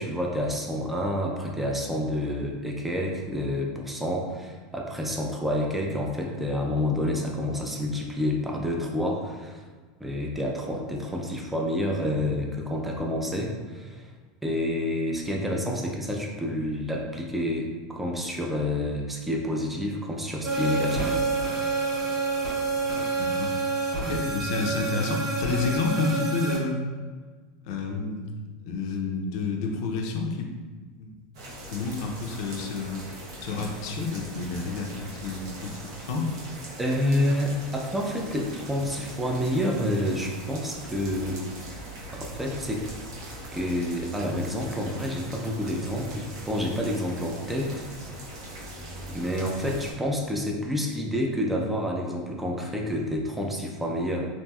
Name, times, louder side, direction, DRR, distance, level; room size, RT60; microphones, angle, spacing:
voice 1, 0.0-9.6 10.0-14.1 14.4-21.2 24.1-24.2 36.8-41.4 42.1-42.9 43.5-47.9 49.1-54.3, left 1 dB, 5° right, 0 dB, 0.4 m, -28 dB
sound 1, 20.4-26.6, right 3 dB, 70° right, 1.2 m, -28 dB
voice 2, 22.8-23.5 24.0-26.8 27.6-28.3 28.6-31.1 31.7-33.0 33.4-35.8 36.1-36.3, left 4 dB, 65° left, 1 dB, 0.5 m, -30 dB
sound 2, 31.3-49.9, right 1 dB, 90° right, 0.8 m, -41 dB
2.9 x 2.6 x 2.3 m, 1.4 s
supercardioid pair, 150°, 3 cm